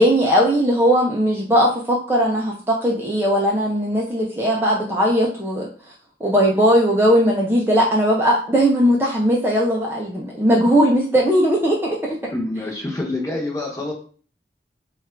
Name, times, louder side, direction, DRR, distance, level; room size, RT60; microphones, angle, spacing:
voice 1, 0.0-5.7 6.2-12.2, equal, 15° right, -3 dB, 0.5 m, -18 dB
voice 2, 12.2-13.9, left 2 dB, 20° left, -1 dB, 1.0 m, -26 dB
3.5 x 2.4 x 4.4 m, 0.41 s
head